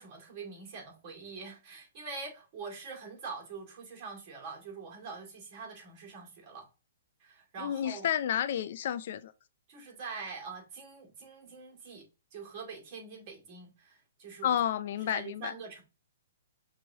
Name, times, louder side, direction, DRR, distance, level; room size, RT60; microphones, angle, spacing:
voice 1, 0.0-6.7 7.2-8.1 9.7-14.6 14.9-15.8, right 4 dB, 40° right, 2.2 m, -44 dB
voice 2, 7.6-9.3 14.4-15.5, left 10 dB, 55° left, 0.4 m, -31 dB
6.2 x 3.0 x 2.8 m
hypercardioid pair, 145°, 0 cm